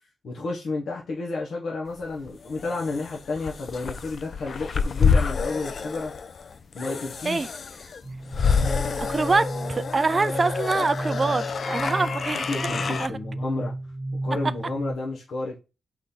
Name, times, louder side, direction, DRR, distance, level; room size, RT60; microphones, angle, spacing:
voice 1, 0.2-6.1 6.7-7.5 12.3-13.7 14.2-15.6, left 3 dB, 80° left, 1.1 m, -31 dB
sound 1, 2.0-13.1, left 5 dB, 60° left, 0.4 m, -28 dB
sound 2, 8.0-14.9, right 2 dB, 30° left, 1.7 m, -33 dB
voice 2, 9.0-12.6 13.0-13.2, right 3 dB, 40° right, 0.3 m, -25 dB
3.9 x 3.2 x 4.0 m
cardioid pair, 65°, 0 cm